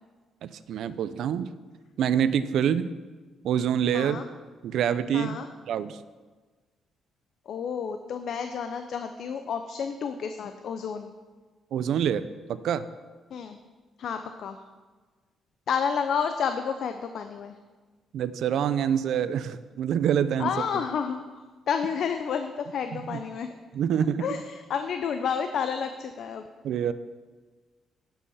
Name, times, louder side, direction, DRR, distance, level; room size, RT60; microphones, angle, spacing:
voice 1, 0.4-1.5 2.0-2.9 3.4-4.2 4.6-5.4 5.7-6.0 11.7-12.9 18.1-20.5 23.1-23.2 23.7-24.3 26.6-26.9, right 9 dB, 75° right, 14 dB, 0.5 m, -26 dB
voice 2, 3.9-4.2 5.1-5.5 7.5-11.1 13.3-13.6 14.0-14.6 15.7-17.6 20.4-23.6 24.2-26.5, left 6 dB, 65° left, 7 dB, 0.6 m, -30 dB
11.0 x 5.5 x 5.6 m, 1.4 s
cardioid pair, 90°, 0 cm